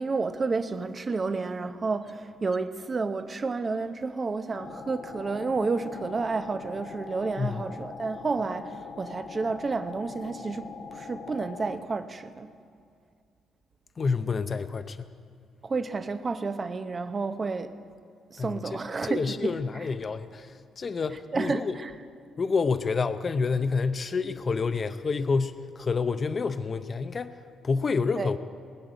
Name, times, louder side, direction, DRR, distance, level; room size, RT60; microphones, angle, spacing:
voice 1, 0.0-12.5 15.6-17.7 18.3-19.9 21.3-21.9 28.2-28.3, right 4 dB, 35° right, 0.8 m, -31 dB
sound 1, 4.5-11.8, left 5 dB, 75° left, 1.4 m, -42 dB
voice 2, 7.4-7.7 14.0-15.0 18.4-21.8 22.4-27.3 27.6-28.4, left 4 dB, 40° left, 0.6 m, -28 dB
20.0 x 6.8 x 9.0 m
cardioid pair, 90°, 0 cm